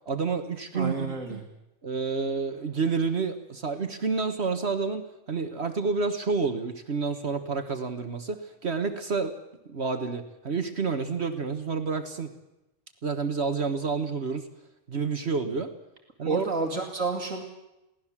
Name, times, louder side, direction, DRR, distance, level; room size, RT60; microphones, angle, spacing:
voice 1, 0.1-1.4 1.8-9.3 9.7-12.3 13.0-14.5 14.9-15.7 16.2-16.4, right 4 dB, 55° right, 9 dB, 1.6 m, -29 dB
voice 2, 0.7-1.4 16.2-17.4, right 3 dB, 70° right, 3 dB, 2.6 m, -30 dB
22.5 x 17.0 x 7.4 m, 0.91 s
omnidirectional pair, 1.4 m